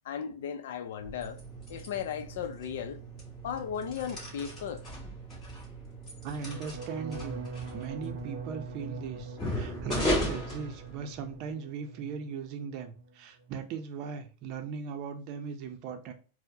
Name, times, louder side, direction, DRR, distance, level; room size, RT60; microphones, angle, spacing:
voice 1, 0.0-1.4 1.7-3.0 3.4-4.8, left 8 dB, 70° left, 0.5 m, -36 dB
sound 1, 1.0-11.4, equal, 20° left, 1.6 m, -37 dB
voice 2, 6.2-7.4 7.7-16.1, right 6 dB, 40° right, 0.6 m, -39 dB
sound 2, 6.4-12.3 12.6-13.1 13.4-13.8, right 4 dB, 80° right, 0.6 m, -43 dB
4.4 x 2.1 x 2.7 m
supercardioid pair, 155°, 0 cm